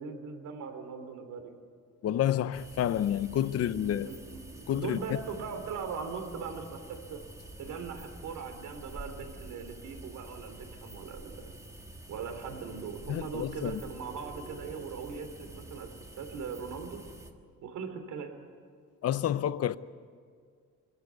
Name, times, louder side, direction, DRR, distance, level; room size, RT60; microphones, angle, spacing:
voice 1, 0.0-1.5 3.4-7.2 7.6-11.3 12.1-15.9 16.2-17.0 17.6-18.3, right 5 dB, 80° right, 3.0 m, -40 dB
voice 2, 2.0-4.1 4.7-5.2 13.1-13.8 19.0-19.8, left 11 dB, 55° left, 0.7 m, -29 dB
sound 1, 2.5-17.3, right 1 dB, 10° right, 1.4 m, -48 dB
24.5 x 14.5 x 9.4 m
cardioid pair, 145°, 30 cm